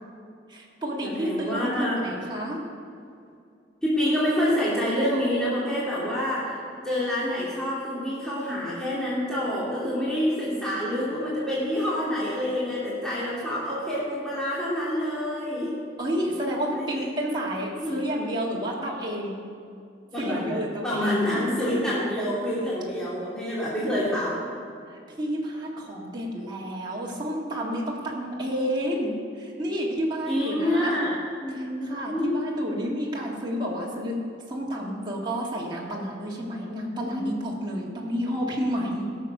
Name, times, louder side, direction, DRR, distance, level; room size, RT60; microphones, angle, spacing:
voice 1, 0.5-2.6 16.0-19.4 20.2-21.2 24.9-31.0 31.5-34.1 34.5-39.1, equal, 25° right, -4 dB, 1.8 m, -30 dB
voice 2, 1.0-1.9 3.8-6.5 6.8-15.7 16.7-17.0 17.8-18.0 20.1-24.4 30.3-32.3 36.6-37.5, left 1 dB, 5° left, -9 dB, 2.4 m, -27 dB
18.0 x 6.7 x 5.4 m, 2.4 s
head